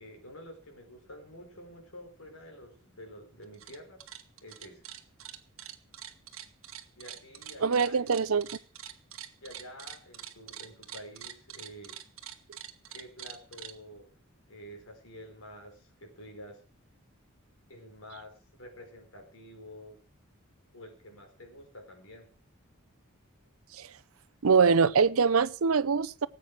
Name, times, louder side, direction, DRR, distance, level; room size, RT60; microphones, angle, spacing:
voice 1, 0.0-4.0 4.4-4.8 7.0-8.4 9.4-12.0 12.9-14.2 14.5-16.6 17.7-20.0 20.7-22.3, equal, 75° left, 4.9 m, -49 dB
sound 1, 3.4-3.8 4.0-13.7, right 11 dB, 70° right, 1.5 m, -44 dB
voice 2, 7.6-8.5 23.7-23.9 24.4-26.3, right 5 dB, 85° right, 0.7 m, -23 dB
18.5 x 8.3 x 6.2 m
head